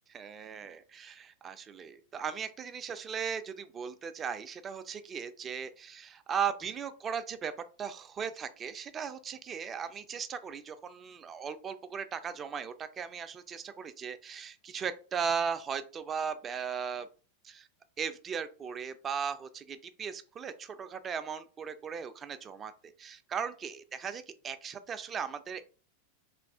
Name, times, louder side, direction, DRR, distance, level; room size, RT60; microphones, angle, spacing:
voice 1, 0.1-17.1 17.4-17.7 18.0-25.6, right 7 dB, 25° right, 11 dB, 0.3 m, -37 dB
3.0 x 2.3 x 3.5 m, 0.37 s
figure-of-eight pair, 90°, 0 cm